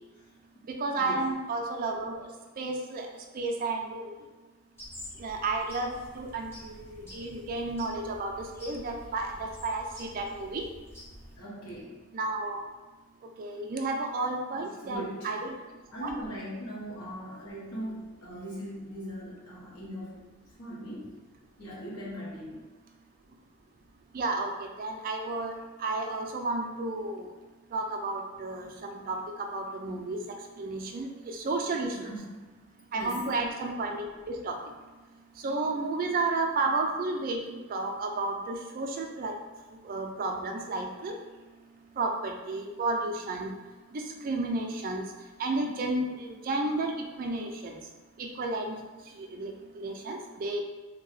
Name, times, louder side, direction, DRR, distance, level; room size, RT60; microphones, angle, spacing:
voice 1, 0.7-2.3 2.6-3.1 3.3-4.2 5.2-10.6 12.1-12.6 13.4-15.5 16.0-16.1 24.1-25.5 25.8-27.3 27.7-32.1 32.9-34.6 35.4-39.3 39.8-41.1 42.0-43.5 43.9-45.1 45.4-46.9 47.2-47.8 48.2-48.8 49.2-50.6, right 2 dB, 40° right, 3 dB, 0.3 m, -32 dB
sound 1, 4.8-11.4, left 1 dB, 10° left, 0.6 m, -48 dB
voice 2, 11.4-12.0 14.5-15.3 15.9-20.2 20.6-21.1 21.6-22.6 32.0-32.5 32.9-33.3, equal, 85° left, -5 dB, 0.9 m, -40 dB
2.6 x 2.2 x 3.2 m, 1.3 s
head